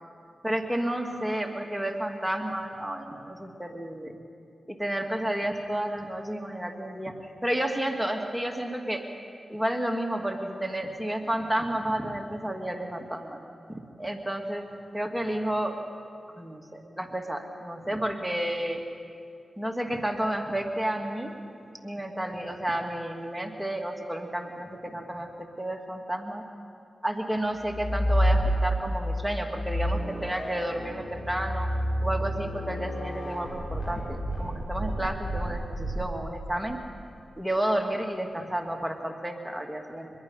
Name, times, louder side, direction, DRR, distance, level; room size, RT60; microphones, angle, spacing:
voice 1, 0.4-4.2 4.7-7.1 7.4-9.0 9.5-13.4 13.7-14.6 14.9-15.8 16.4-18.8 19.6-21.4 21.8-26.4 27.0-31.7 32.0-36.8 37.4-40.1, right 1 dB, 5° right, 2 dB, 2.4 m, -31 dB
sound 1, 27.6-29.0 29.5-36.4, equal, 60° left, 7.6 m, -29 dB
24.5 x 21.5 x 5.7 m, 2.4 s
cardioid pair, 45°, 0 cm